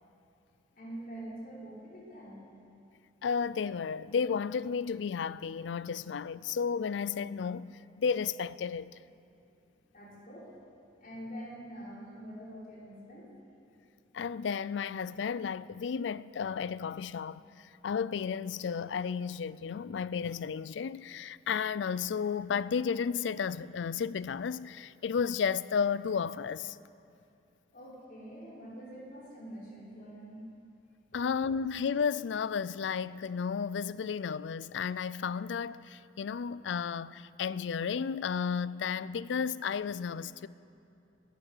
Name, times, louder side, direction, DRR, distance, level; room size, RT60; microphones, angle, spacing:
voice 1, 0.7-2.4 9.9-10.5 11.0-13.3 27.7-30.4 31.1-31.2, right 1 dB, 50° left, 4.4 m, -45 dB
voice 2, 3.2-9.0 14.1-26.8 31.1-40.5, left 6 dB, 85° left, 0.4 m, -33 dB
18.5 x 11.5 x 6.6 m
head